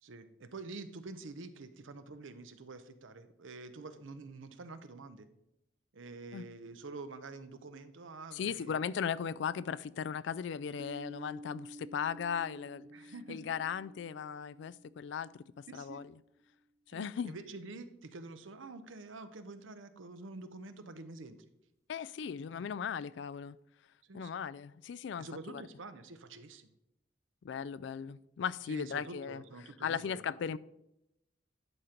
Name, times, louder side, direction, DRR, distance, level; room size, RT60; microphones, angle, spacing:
voice 1, 0.0-5.3 5.9-8.8 12.9-13.5 15.7-16.1 16.9-21.5 24.1-24.4 25.2-26.7 28.7-30.4, right 3 dB, 80° right, 0.7 m, -47 dB
voice 2, 8.3-15.4 15.7-16.0 16.9-17.3 21.9-23.6 24.1-25.6 27.4-29.4 29.8-30.6, left 7 dB, 65° left, 0.3 m, -37 dB
Piano, 10.8-16.2, right 1 dB, 15° right, 0.4 m, -51 dB
11.0 x 4.4 x 5.1 m
head